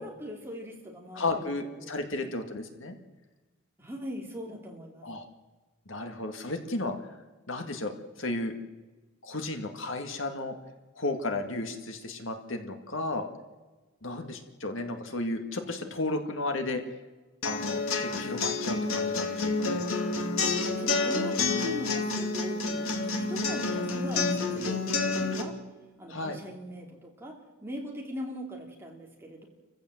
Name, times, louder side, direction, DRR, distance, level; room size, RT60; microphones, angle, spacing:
voice 1, 0.0-1.5 1.8-2.3 3.8-5.0 20.6-25.5 26.0-29.5, equal, 10° right, 0 dB, 3.1 m, -41 dB
voice 2, 1.2-3.0 5.0-5.3 5.9-6.9 7.5-8.5 9.2-10.6 11.0-13.3 14.0-16.8 17.4-19.8 26.1-26.4, left 2 dB, 65° left, 6 dB, 2.0 m, -33 dB
sound 1, 17.4-25.4, left 3 dB, 80° left, 2.4 m, -29 dB
28.0 x 15.5 x 7.8 m, 1.2 s
head